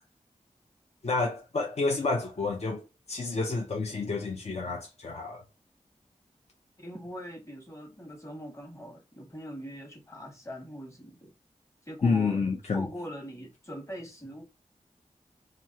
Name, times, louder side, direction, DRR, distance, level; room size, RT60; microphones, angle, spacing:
voice 1, 1.0-5.4 12.0-12.9, left 4 dB, 55° left, 0.5 m, -29 dB
voice 2, 6.8-11.3 11.9-12.4 12.7-14.4, equal, 20° left, 1.0 m, -42 dB
3.0 x 2.3 x 2.8 m
wide cardioid pair, 65°, 13 cm